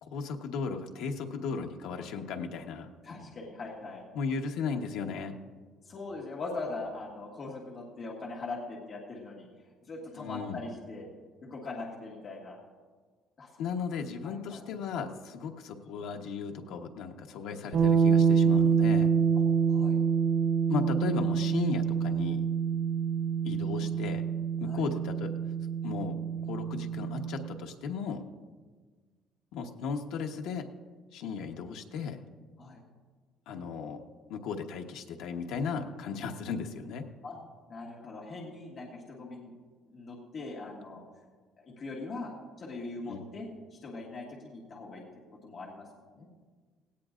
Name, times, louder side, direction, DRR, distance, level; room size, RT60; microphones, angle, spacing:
voice 1, 0.0-2.9 4.1-5.3 10.1-10.6 13.6-19.1 20.7-22.4 23.4-24.2 24.6-25.3 25.8-26.2 26.4-28.2 29.5-30.7 31.1-32.2 33.5-34.0 34.3-37.0 43.0-43.2, left 5 dB, 70° left, 3 dB, 1.1 m, -35 dB
voice 2, 3.0-4.1 5.8-9.5 9.8-11.1 11.4-12.6 13.4-13.6 14.2-14.6 19.3-20.0 24.6-24.9 32.6-32.8 37.2-37.4 37.7-39.5 39.9-41.0 41.6-42.3 42.6-45.0 45.4-45.9 46.2-46.3, left 3 dB, 30° left, -3 dB, 1.8 m, -41 dB
sound 1, 17.7-27.5, right 6 dB, 50° right, 4.3 m, -26 dB
17.5 x 17.0 x 2.5 m, 1.5 s
cardioid pair, 175°, 0 cm